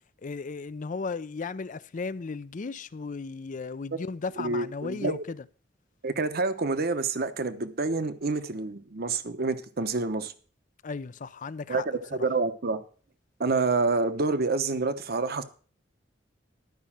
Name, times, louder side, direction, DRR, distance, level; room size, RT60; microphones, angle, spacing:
voice 1, 0.2-5.4 10.8-11.9 12.1-12.3, left 4 dB, 45° left, 0.5 m, -35 dB
voice 2, 4.4-5.2 6.0-10.3 11.7-12.8 13.4-15.4, right 3 dB, 55° right, 1.0 m, -28 dB
12.0 x 5.4 x 7.3 m
head